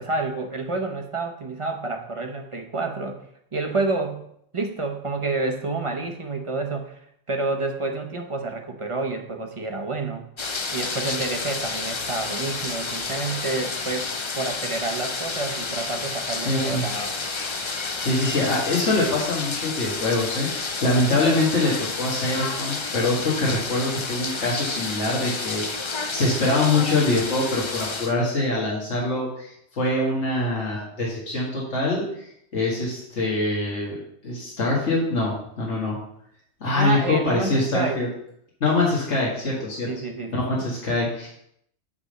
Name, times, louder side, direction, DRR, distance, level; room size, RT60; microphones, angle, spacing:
voice 1, 0.0-3.2 3.5-4.2 4.5-7.0 7.3-10.2 10.7-17.1 36.7-38.0 39.9-40.7, right 3 dB, 30° right, 4 dB, 1.0 m, -29 dB
sound 1, 10.4-28.1, left 4 dB, 35° left, 0.5 m, -30 dB
voice 2, 16.5-16.8 17.7-33.9 34.2-36.0 36.6-38.1 38.6-39.9 40.3-41.3, left 2 dB, 80° left, -5 dB, 2.2 m, -24 dB
9.7 x 3.5 x 6.5 m, 0.72 s
omnidirectional pair, 1.2 m